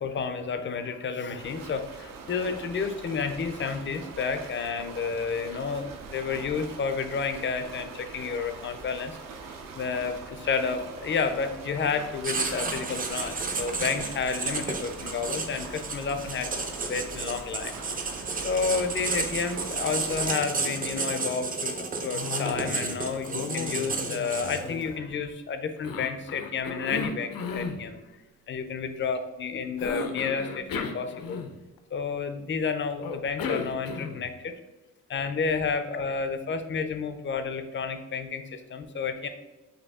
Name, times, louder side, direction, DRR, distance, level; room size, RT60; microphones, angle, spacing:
voice 1, 0.0-9.2 9.7-17.7 18.4-28.0 28.5-31.4 31.9-34.5 35.1-39.3, left 5 dB, 35° left, 9 dB, 0.4 m, -31 dB
sound 1, 1.4-20.3, right 4 dB, 75° right, 0.8 m, -43 dB
Writing, 12.2-24.8, right 4 dB, 25° right, 0.4 m, -32 dB
Cough, 22.1-23.0 23.2-25.3 25.8-27.8 29.8-31.8 33.0-34.3, left 5 dB, 80° left, 0.6 m, -35 dB
5.2 x 2.6 x 3.5 m, 1.1 s
wide cardioid pair, 160°, 34 cm